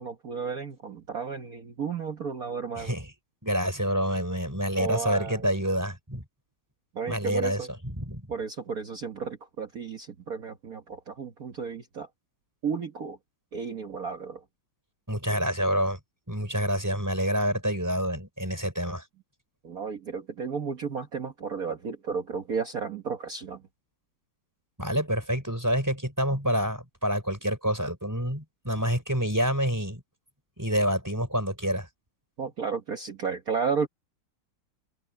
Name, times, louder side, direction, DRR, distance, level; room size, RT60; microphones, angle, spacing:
voice 1, 0.0-2.9 4.8-5.5 6.9-7.7 8.3-12.1 12.6-13.2 13.5-14.4 19.6-23.6 32.4-33.9, right 5 dB, 45° right, 1.6 m, -33 dB
voice 2, 2.7-3.1 3.4-6.2 7.1-8.3 15.1-16.0 16.3-19.0 24.8-30.0 30.6-31.9, equal, 10° right, 3.9 m, -27 dB
omnidirectional pair, 2.3 m